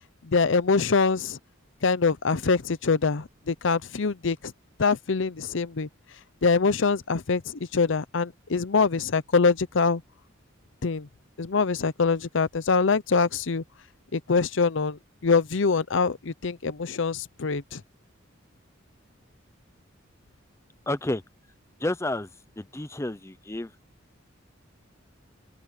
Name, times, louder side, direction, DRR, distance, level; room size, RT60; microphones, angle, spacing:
voice 1, 0.3-1.4 1.8-4.5 4.8-5.9 6.4-7.4 7.7-10.0 10.8-11.1 11.4-13.6 14.1-17.8, left 4 dB, 65° left, 0.7 m, -24 dB
voice 2, 20.9-21.2 21.8-22.3 22.6-23.7, left 1 dB, 15° left, 0.7 m, -30 dB
open air
head